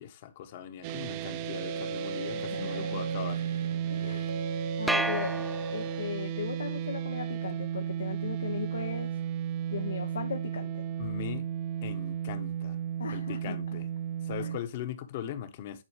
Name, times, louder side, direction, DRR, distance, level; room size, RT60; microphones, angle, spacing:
voice 1, 0.0-3.4 11.0-11.5 11.8-12.8 13.1-13.9 14.2-15.8, left 9 dB, 45° left, 1.2 m, -39 dB
sound 1, 0.8-14.6, right 10 dB, 40° right, 0.6 m, -34 dB
sound 2, 1.3-6.3, right 2 dB, 80° right, 1.0 m, -39 dB
voice 2, 2.3-3.0 3.9-4.3 4.8-5.3 5.7-9.2 9.7-10.7 13.0-13.6 14.4-14.5, left 6 dB, 80° left, 1.1 m, -37 dB
sound 3, 4.9-6.2, right 1 dB, 5° right, 0.3 m, -32 dB
10.5 x 4.4 x 3.2 m
hypercardioid pair, 140°, 0 cm